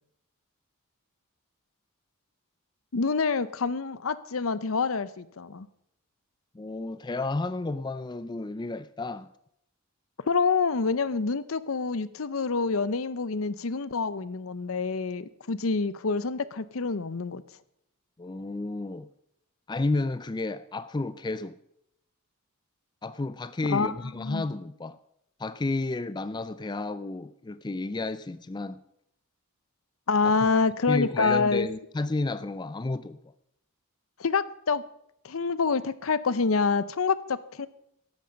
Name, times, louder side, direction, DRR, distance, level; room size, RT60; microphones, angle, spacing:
voice 1, 2.9-5.7 10.3-17.4 23.7-24.4 30.1-31.7 34.2-34.8 35.2-37.7, left 4 dB, 70° left, 0.7 m, -27 dB
voice 2, 6.5-9.3 18.2-19.1 19.7-21.5 23.0-25.0 25.4-28.8 30.9-33.2, left 2 dB, 20° left, 0.4 m, -31 dB
14.0 x 11.5 x 5.2 m
head